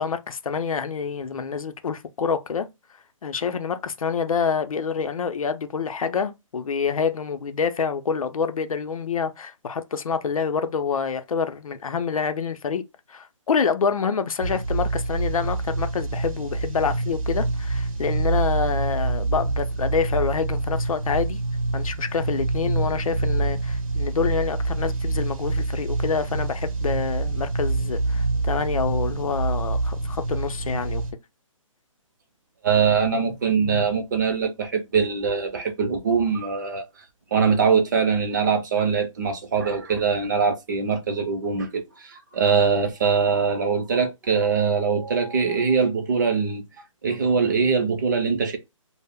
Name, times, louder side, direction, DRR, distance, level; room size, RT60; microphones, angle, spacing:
voice 1, 0.0-2.7 3.2-12.8 13.1-21.4 21.7-31.0, left 6 dB, 90° left, 0.5 m, -27 dB
sound 1, 14.4-31.1, right 3 dB, 80° right, 0.7 m, -26 dB
voice 2, 32.6-36.8 37.3-46.6 47.0-48.6, right 5 dB, 35° right, 0.5 m, -22 dB
2.1 x 2.0 x 3.5 m
hypercardioid pair, 160°, 17 cm